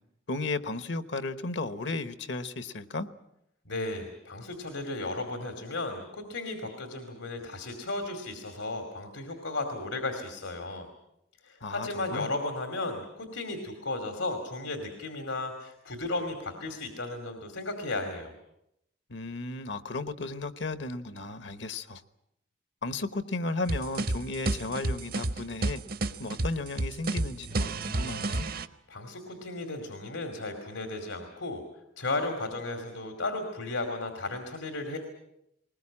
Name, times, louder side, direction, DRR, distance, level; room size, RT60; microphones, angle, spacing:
voice 1, 0.3-3.1 11.6-12.3 19.1-22.0 22.8-25.8 26.2-28.5, left 2 dB, 65° left, 13 dB, 1.0 m, -34 dB
voice 2, 3.7-10.9 11.4-18.3 28.9-31.6 32.0-35.0, left 2 dB, 85° left, 6 dB, 2.6 m, -35 dB
sound 1, 23.7-28.7, right 2 dB, 50° right, 0.8 m, -30 dB
20.5 x 20.0 x 8.7 m, 0.80 s
head